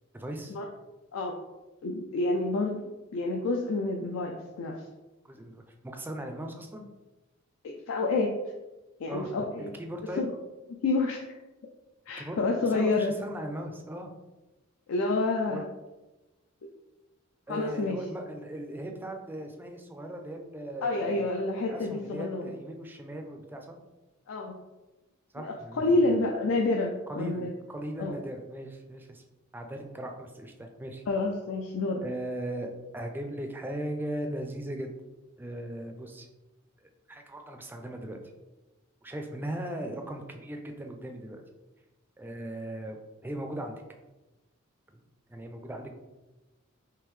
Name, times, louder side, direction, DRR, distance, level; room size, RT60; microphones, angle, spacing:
voice 1, 0.1-0.6 5.2-6.8 9.1-10.2 12.2-12.4 12.7-14.1 15.5-15.6 17.5-21.3 21.6-23.8 25.3-26.2 27.1-29.2 29.5-31.0 32.0-34.9 35.4-36.3 37.1-38.2 39.0-41.4 42.2-43.0 43.2-43.8 44.9-45.0 45.3-45.9, right 1 dB, 10° right, 3 dB, 0.3 m, -38 dB
voice 2, 1.8-2.8 3.1-4.8 7.6-8.3 9.0-9.7 10.2-10.3 10.8-11.3 12.1-13.1 14.9-15.6 17.5-18.0 20.8-22.5 24.3-24.6 25.4-27.5 28.0-28.2 31.1-32.0, left 2 dB, 85° left, 1 dB, 0.4 m, -28 dB
3.6 x 2.8 x 3.1 m, 1.1 s
head